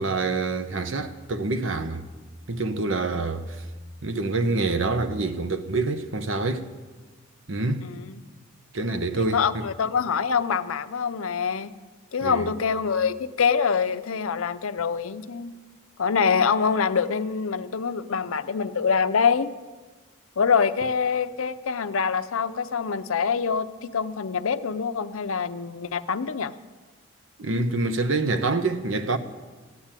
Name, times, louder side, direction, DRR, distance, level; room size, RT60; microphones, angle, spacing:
voice 1, 0.0-2.0 2.5-3.6 4.0-6.7 7.5-7.8 8.7-9.7 12.2-12.5 27.4-29.2, right 3 dB, 65° right, 1.0 m, -26 dB
voice 2, 7.8-8.2 9.2-11.7 12.1-15.5 16.0-19.5 20.4-26.5, left 6 dB, 80° left, 0.6 m, -25 dB
14.5 x 9.6 x 8.9 m
head